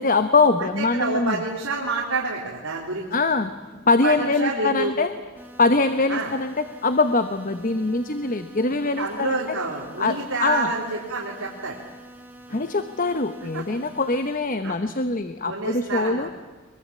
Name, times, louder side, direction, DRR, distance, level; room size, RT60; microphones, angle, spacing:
voice 1, 0.0-1.4 3.1-5.1 5.6-9.4 10.0-10.7 12.5-16.3, left 3 dB, 40° left, 10 dB, 1.0 m, -23 dB
voice 2, 0.6-3.1 4.0-4.9 6.1-6.3 9.0-11.8 12.5-12.7 13.5-13.6 14.6-14.8 15.5-16.3, right 3 dB, 70° right, -3 dB, 3.7 m, -28 dB
sound 1, 5.4-14.4, right 1 dB, 10° right, 2.4 m, -46 dB
23.5 x 22.5 x 8.7 m, 1.4 s
head